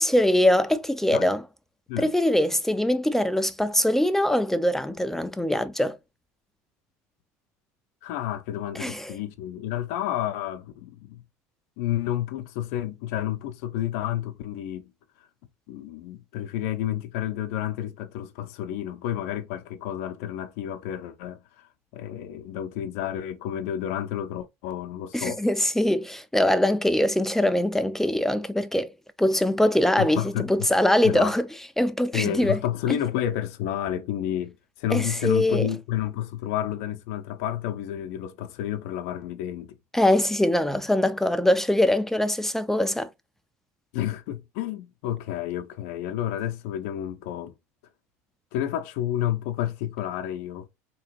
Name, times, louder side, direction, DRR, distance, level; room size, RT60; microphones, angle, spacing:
voice 1, 0.0-1.4 2.0-6.0 8.8-9.1 25.1-28.9 29.2-31.5 31.8-32.6 32.9-33.0 34.9-35.7 39.9-43.1, left 1 dB, 5° left, 0.4 m, -22 dB
voice 2, 8.0-11.2 11.8-14.9 15.2-15.3 15.7-25.4 30.0-30.5 31.0-31.4 32.1-39.8 43.9-47.5 48.5-50.7, left 11 dB, 70° left, 0.6 m, -30 dB
3.6 x 2.9 x 2.9 m
hypercardioid pair, 90°, 8 cm